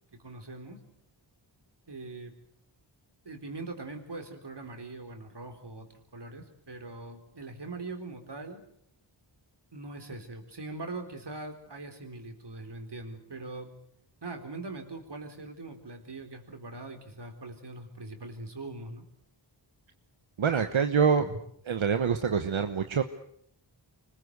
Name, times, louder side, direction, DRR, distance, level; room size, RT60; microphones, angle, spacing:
voice 1, 0.1-0.8 1.9-2.3 3.2-8.6 9.7-13.7 14.2-19.1 21.2-21.4, right 2 dB, 60° right, 6 dB, 4.3 m, -42 dB
voice 2, 20.4-21.3 21.7-23.0, right 6 dB, 90° right, 8 dB, 1.2 m, -25 dB
25.0 x 21.0 x 8.1 m, 0.70 s
wide cardioid pair, 50°, 46 cm